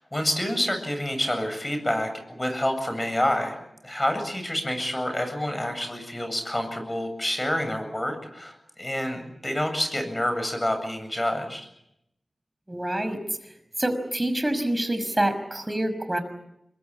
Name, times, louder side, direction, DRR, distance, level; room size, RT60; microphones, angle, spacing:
voice 1, 0.0-3.6 3.8-11.7, left 1 dB, 20° left, 6 dB, 7.9 m, -28 dB
voice 2, 12.7-13.2 13.8-16.2, right 1 dB, 20° right, 9 dB, 5.6 m, -26 dB
25.5 x 22.5 x 8.7 m, 0.81 s
cardioid pair, 45°, 0 cm